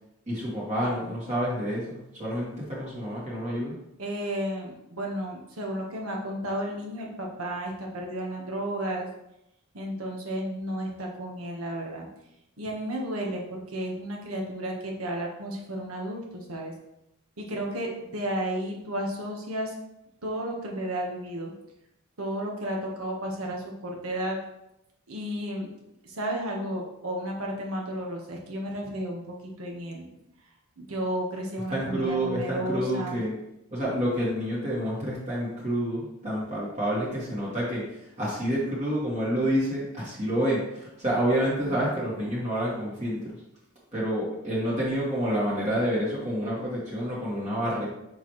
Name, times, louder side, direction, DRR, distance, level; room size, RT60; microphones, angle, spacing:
voice 1, 0.3-3.8 31.7-33.3 33.7-43.3 43.9-47.9, equal, 35° right, -7 dB, 1.9 m, -28 dB
voice 2, 4.0-9.1 9.7-12.1 12.6-16.7 17.4-19.7 20.2-21.5 22.2-24.4 25.1-25.7 26.0-30.1 30.8-33.2 41.6-42.1, right 1 dB, 75° right, 0 dB, 1.4 m, -33 dB
6.6 x 4.5 x 3.2 m, 0.86 s
head